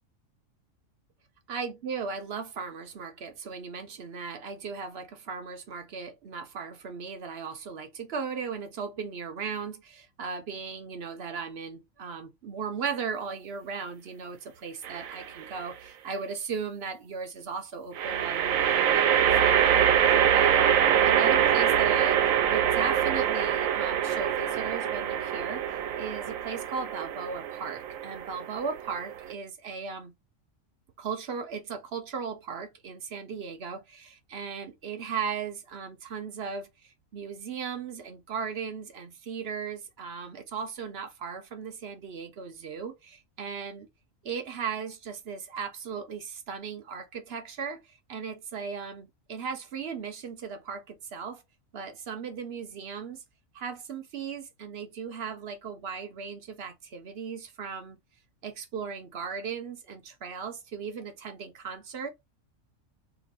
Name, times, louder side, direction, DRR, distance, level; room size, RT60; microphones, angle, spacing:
voice 1, 1.5-22.2 22.5-30.1 31.0-43.9 44.2-51.4 51.7-53.2 53.5-58.0 58.4-62.1, right 6 dB, 60° right, 0.8 m, -37 dB
sound 1, 14.8-15.4 18.0-29.3, right 9 dB, 90° right, 1.0 m, -24 dB
2.9 x 2.5 x 3.9 m
omnidirectional pair, 1.4 m